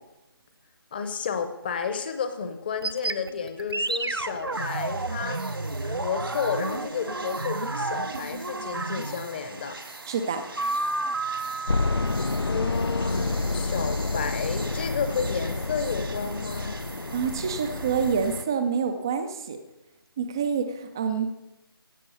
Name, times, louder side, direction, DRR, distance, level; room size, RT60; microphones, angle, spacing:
voice 1, 0.9-5.4 5.8-9.8 12.4-16.8, left 6 dB, 25° left, 9 dB, 0.8 m, -31 dB
sound 1, 2.8-9.4 10.6-13.1, right 2 dB, 85° right, 0.8 m, -31 dB
sound 2, 4.5-18.4, right 3 dB, 65° right, 1.6 m, -43 dB
voice 2, 10.1-10.4 17.1-19.6 20.2-21.3, right 6 dB, 10° right, 8 dB, 0.3 m, -27 dB
sound 3, 11.7-18.4, left 3 dB, 90° left, 0.5 m, -29 dB
16.0 x 6.0 x 6.8 m, 0.98 s
figure-of-eight pair, 155°, 13 cm